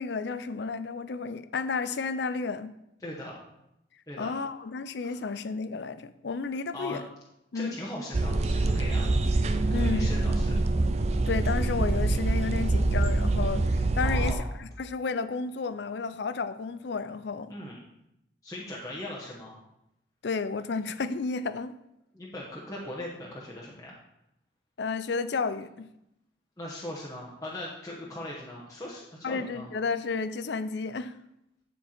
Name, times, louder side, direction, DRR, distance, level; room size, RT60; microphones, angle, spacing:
voice 1, 0.0-2.7 4.2-7.0 7.5-7.7 9.7-10.1 11.3-17.5 20.2-21.7 24.8-25.9 29.2-31.1, left 4 dB, 70° left, 12 dB, 0.5 m, -32 dB
voice 2, 3.0-3.4 4.1-4.3 5.0-5.2 6.7-7.0 7.5-9.2 9.7-10.5 14.0-14.5 17.5-17.8 18.4-19.6 22.1-23.9 26.6-29.7, left 1 dB, 20° left, -5 dB, 1.0 m, -39 dB
sound 1, 8.1-14.4, right 2 dB, 35° right, 0.4 m, -25 dB
9.9 x 4.5 x 4.3 m, 0.83 s
head